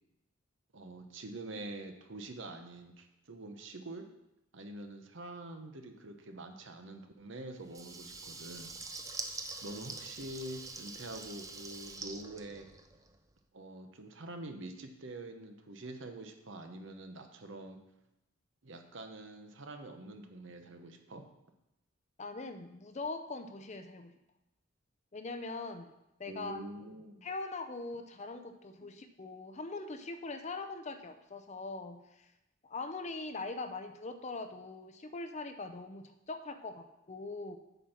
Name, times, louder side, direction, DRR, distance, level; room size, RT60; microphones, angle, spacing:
voice 1, 0.7-4.0 4.5-8.7 9.6-12.7 13.5-17.8 18.6-21.2 26.3-27.3 28.8-28.9, right 2 dB, 60° right, 5 dB, 0.9 m, -46 dB
Water tap faucet / Liquid, 7.7-13.2, right 3 dB, 15° right, 0.5 m, -45 dB
voice 2, 22.2-24.2 25.1-25.9 26.2-26.6 27.2-32.3 32.6-37.6, left 3 dB, 35° left, 8 dB, 0.5 m, -42 dB
8.2 x 4.4 x 5.7 m, 0.89 s
head